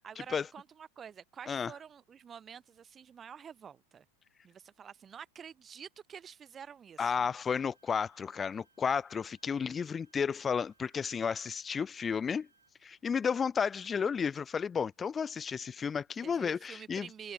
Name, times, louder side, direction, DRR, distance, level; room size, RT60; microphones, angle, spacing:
voice 1, 0.0-4.0 4.4-7.3 16.2-17.3, right 7 dB, 20° right, 0.6 m, -48 dB
voice 2, 7.0-12.5 12.8-17.1, left 6 dB, 20° left, 0.5 m, -32 dB
Bowed string instrument, 7.6-12.7, right 3 dB, 80° right, 7.4 m, -70 dB
figure-of-eight pair, 90°, 0 cm